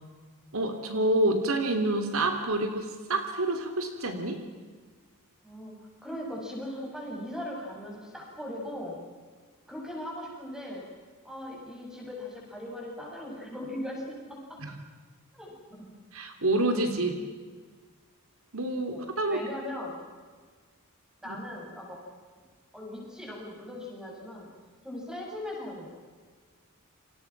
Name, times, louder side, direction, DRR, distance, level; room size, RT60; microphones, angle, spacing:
voice 1, 0.5-4.4 14.6-14.8 16.1-17.2 18.5-19.4, right 2 dB, 70° right, 6 dB, 2.9 m, -28 dB
voice 2, 5.4-5.7 6.0-9.0 9.7-10.9 11.2-14.6 15.4-16.0 18.9-20.0 21.2-22.1 22.7-24.5 24.8-25.9, left 1 dB, 5° right, -2 dB, 7.8 m, -39 dB
30.0 x 26.0 x 6.0 m, 1.5 s
head